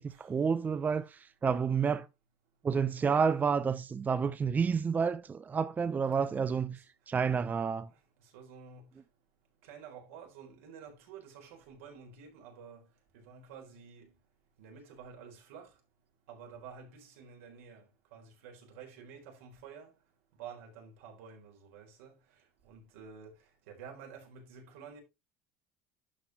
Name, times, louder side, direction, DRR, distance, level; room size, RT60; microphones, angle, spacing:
voice 1, 0.0-2.1 2.6-6.8 7.1-7.9, right 6 dB, 25° right, 0.6 m, -30 dB
voice 2, 8.3-8.9 9.6-12.9 13.1-14.1 14.6-15.7 16.3-19.9 20.4-22.1 22.6-23.3 23.7-25.0, right 6 dB, 85° right, 4.1 m, -50 dB
11.5 x 5.7 x 2.9 m
supercardioid pair, 95°, 7 cm